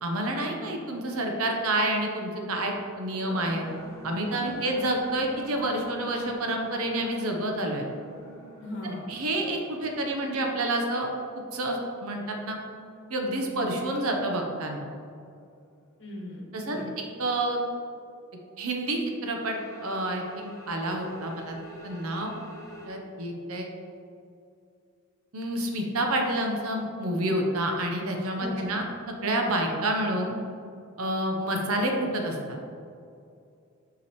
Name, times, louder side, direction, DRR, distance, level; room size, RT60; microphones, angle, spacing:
voice 1, 0.0-3.6 4.0-7.8 8.8-11.1 11.3-12.6 13.1-14.9 16.5-16.8 17.2-17.6 18.6-19.6 19.8-21.6 21.8-22.3 22.9-23.7 25.3-30.3 31.0-32.4, right 1 dB, 75° right, 2 dB, 0.8 m, -29 dB
sound 1, 3.2-12.9 13.2-13.3 19.2-22.9, right 1 dB, 15° left, 0.9 m, -46 dB
voice 2, 8.6-9.1 16.0-16.9 28.4-28.7, left 1 dB, 55° left, -2 dB, 1.4 m, -38 dB
6.0 x 5.9 x 3.0 m, 2.5 s
head